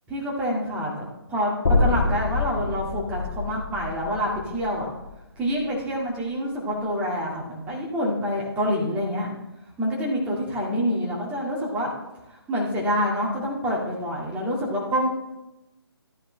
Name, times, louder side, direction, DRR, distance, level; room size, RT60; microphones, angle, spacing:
voice 1, 0.1-4.9 5.4-9.3 9.8-11.9 12.3-15.1, equal, 10° right, -3 dB, 1.9 m, -27 dB
sound 1, 1.6-5.8, left 3 dB, 35° left, 1.7 m, -26 dB
13.0 x 10.0 x 3.3 m, 0.95 s
figure-of-eight pair, 145°, 13 cm